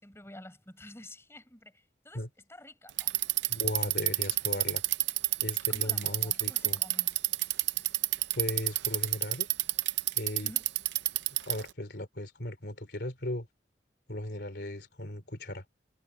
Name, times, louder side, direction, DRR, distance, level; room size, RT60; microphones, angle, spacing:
voice 1, 0.0-2.2 2.5-3.1 5.7-7.2 10.4-10.7, left 1 dB, 15° left, 6.7 m, -50 dB
Bicycle, 2.9-11.7, right 17 dB, 90° right, 0.6 m, -28 dB
voice 2, 3.5-4.8 5.4-6.8 8.4-9.5 10.1-10.5 11.4-13.5 14.1-15.6, left 1 dB, 70° left, 3.1 m, -37 dB
head